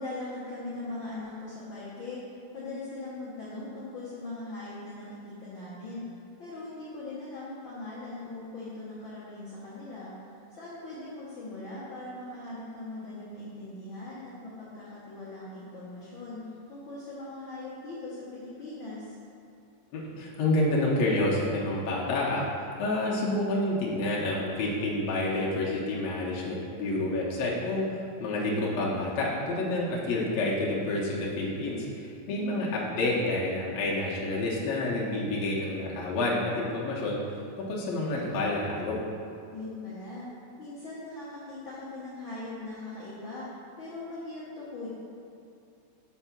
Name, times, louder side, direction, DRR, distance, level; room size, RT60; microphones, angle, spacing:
voice 1, 0.0-6.0 6.4-10.1 10.5-16.4 16.7-19.1 32.3-32.6 39.5-40.3 40.6-43.5 43.8-44.9, left 2 dB, 55° left, -9 dB, 1.5 m, -40 dB
voice 2, 19.9-37.2 37.6-39.0, left 2 dB, 70° left, -5 dB, 1.9 m, -29 dB
5.9 x 4.5 x 5.8 m, 2.6 s
omnidirectional pair, 3.3 m